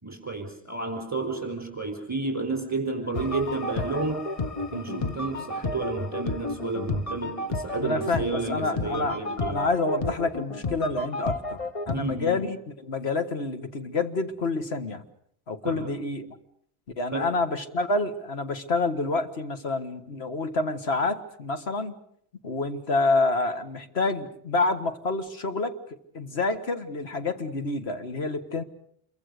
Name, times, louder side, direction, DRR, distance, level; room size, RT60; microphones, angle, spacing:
voice 1, 0.0-4.3 4.6-9.6 11.9-12.4 15.6-15.9 17.1-17.3, right 3 dB, 15° right, 5 dB, 4.5 m, -31 dB
sound 1, 3.1-12.0, left 3 dB, 35° left, 1.3 m, -32 dB
voice 2, 7.8-11.6 11.9-12.6 12.8-15.0 15.5-16.3 17.0-21.9 22.4-28.6, left 3 dB, 80° left, 8 dB, 1.9 m, -28 dB
28.0 x 23.5 x 6.6 m, 0.68 s
omnidirectional pair, 1.1 m